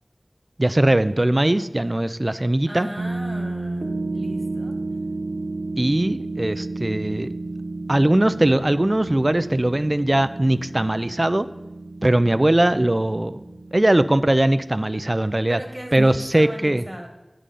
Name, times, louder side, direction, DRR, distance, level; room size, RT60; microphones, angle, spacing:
voice 1, 0.6-2.9 5.8-7.3 7.9-11.5 12.0-13.4 13.7-15.6 15.9-16.8, right 1 dB, 40° right, 13 dB, 0.4 m, -20 dB
sound 1, 1.7-1.8 3.0-14.7 16.0-16.1, right 2 dB, 85° right, 0.7 m, -32 dB
voice 2, 2.7-4.8 15.5-17.1, equal, 20° right, 3 dB, 1.4 m, -37 dB
9.9 x 3.8 x 6.8 m, 1.0 s
wide cardioid pair, 45°, 0 cm